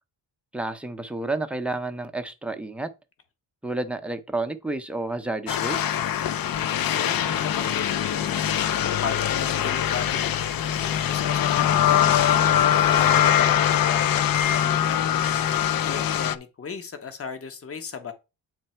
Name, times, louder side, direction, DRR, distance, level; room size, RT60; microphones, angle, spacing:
voice 1, 0.5-2.9 3.6-5.8, right 2 dB, 5° right, 0.5 m, -30 dB
sound 1, 5.5-16.4, left 10 dB, 55° left, 0.5 m, -22 dB
voice 2, 6.5-8.5 8.8-15.5 15.8-18.1, left 6 dB, 30° left, 0.9 m, -36 dB
8.8 x 3.3 x 4.3 m
wide cardioid pair, 155°, 44 cm